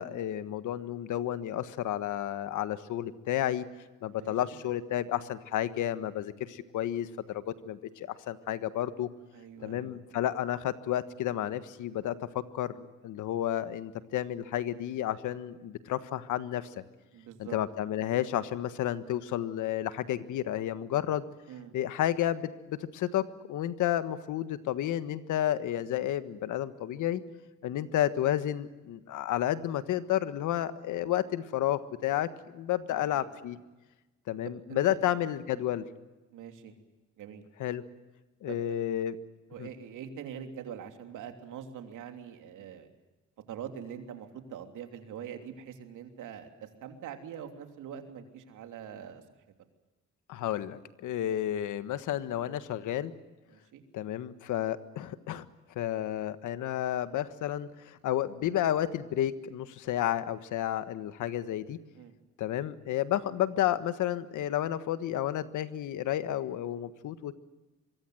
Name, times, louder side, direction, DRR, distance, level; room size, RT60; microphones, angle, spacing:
voice 1, 0.0-3.6 4.0-9.1 9.6-16.7 17.4-21.2 21.7-27.2 27.6-33.6 34.3-35.8 37.6-37.8 38.4-39.2 39.6-39.7 50.3-53.1 53.9-55.4 55.7-61.8 62.4-67.3, left 12 dB, 80° left, 12 dB, 1.5 m, -31 dB
voice 2, 9.3-10.2 17.1-17.6 21.5-21.8 32.9-33.6 34.4-35.0 35.5-35.6 36.3-36.7 37.2-37.4 38.5-38.6 39.5-42.9 43.5-49.2 53.5-53.8 61.9-62.1, right 8 dB, 85° right, 6 dB, 3.2 m, -44 dB
25.0 x 22.5 x 7.9 m, 1.1 s
cardioid pair, 90°, 30 cm